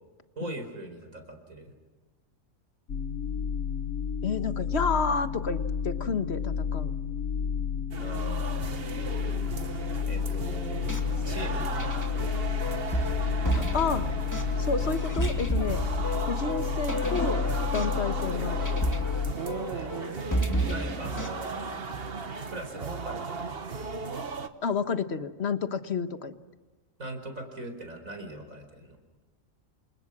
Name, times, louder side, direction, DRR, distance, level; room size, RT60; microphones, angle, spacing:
voice 1, 0.4-1.7 8.0-8.7 9.6-10.8 11.2-12.3 19.4-20.0 20.7-21.7 22.5-23.5 27.0-29.0, right 2 dB, 80° right, 6 dB, 4.9 m, -41 dB
sound 1, 2.9-19.3, left 7 dB, 70° left, 1.4 m, -31 dB
voice 2, 4.2-6.9 13.5-14.1 14.6-15.9 16.3-17.5 17.7-18.6 20.7-20.8 24.6-26.4, left 5 dB, 55° left, 9 dB, 1.6 m, -30 dB
sound 2, 7.9-24.5, right 5 dB, 50° right, 1.5 m, -36 dB
sound 3, 10.7-22.3, right 1 dB, 15° left, 2.5 m, -33 dB
28.5 x 27.5 x 6.2 m, 1.3 s
omnidirectional pair, 1.4 m